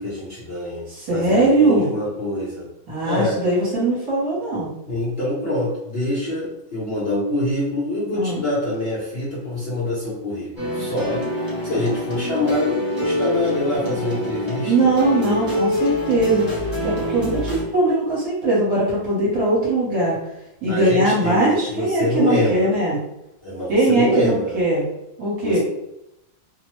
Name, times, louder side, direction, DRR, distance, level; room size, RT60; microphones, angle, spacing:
voice 1, 0.0-2.7 3.0-3.4 4.9-11.2 11.6-14.7 20.7-22.8 23.4-24.6 25.4-25.6, left 1 dB, 50° left, -9 dB, 0.8 m, -25 dB
voice 2, 0.9-1.9 2.9-4.7 8.1-8.4 14.6-16.5 16.8-20.2 20.6-23.0 23.7-24.9 25.2-25.6, right 2 dB, 55° right, -6 dB, 1.3 m, -20 dB
sound 1, 10.6-17.6, left 1 dB, 30° right, 0.9 m, -25 dB
3.0 x 2.1 x 3.0 m, 0.86 s
omnidirectional pair, 1.9 m